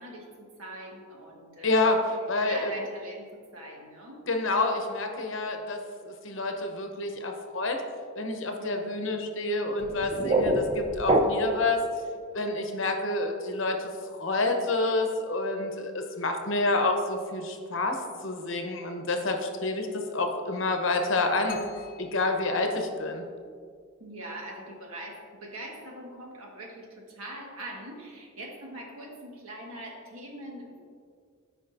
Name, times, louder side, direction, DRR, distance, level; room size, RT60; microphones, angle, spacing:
voice 1, 0.0-1.9 2.4-4.2 8.6-9.1 24.0-30.8, right 1 dB, 80° right, -1 dB, 1.5 m, -42 dB
voice 2, 1.6-2.0 2.3-2.7 4.3-5.8 6.0-7.8 8.1-11.8 12.3-21.6 22.0-23.2, left 2 dB, 60° left, 4 dB, 0.9 m, -28 dB
sound 1, 9.8-11.7, right 1 dB, 25° right, 0.5 m, -25 dB
sound 2, 21.5-23.4, left 3 dB, 40° left, 0.5 m, -44 dB
13.5 x 5.0 x 2.6 m, 2.1 s
head